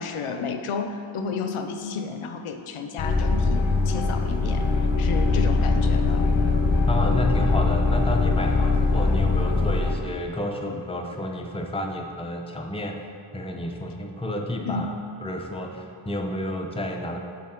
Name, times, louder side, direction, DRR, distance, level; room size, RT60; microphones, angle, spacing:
voice 1, 0.0-6.2 14.7-14.9, left 5 dB, 80° left, 6 dB, 0.6 m, -32 dB
sound 1, 3.0-9.9, left 3 dB, 55° left, 1.0 m, -22 dB
voice 2, 6.9-13.0 13.3-14.9 15.2-17.2, left 1 dB, 10° left, 2 dB, 0.6 m, -30 dB
8.5 x 3.8 x 3.7 m, 2.4 s
cardioid pair, 45°, 50 cm